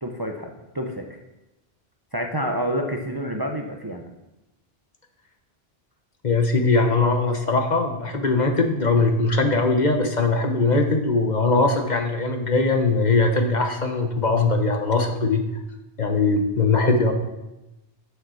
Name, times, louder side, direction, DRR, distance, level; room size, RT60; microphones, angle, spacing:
voice 1, 0.0-1.1 2.1-4.0, equal, 25° right, 2 dB, 0.7 m, -28 dB
voice 2, 6.2-15.4 16.0-17.1, left 3 dB, 45° left, 4 dB, 1.1 m, -21 dB
7.1 x 6.8 x 6.2 m, 0.98 s
omnidirectional pair, 1.1 m